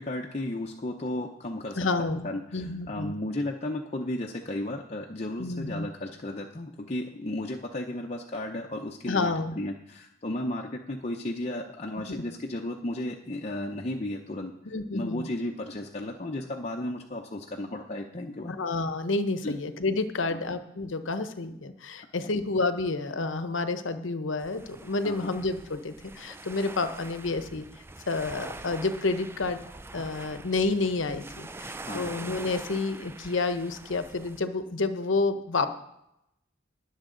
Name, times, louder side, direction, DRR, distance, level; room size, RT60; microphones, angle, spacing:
voice 1, 0.0-14.5 14.9-18.5 19.4-19.5 20.3-20.4 25.0-25.3 31.8-32.2, left 1 dB, 35° left, 0 dB, 0.7 m, -34 dB
voice 2, 1.8-3.1 5.4-5.8 9.1-9.5 12.1-12.2 14.7-15.2 18.5-27.6 28.1-29.6 29.9-35.7, left 3 dB, 80° left, 10 dB, 0.9 m, -29 dB
sound 1, 24.4-34.4, right 2 dB, 10° right, 0.4 m, -44 dB
20.5 x 7.2 x 3.9 m, 0.83 s
head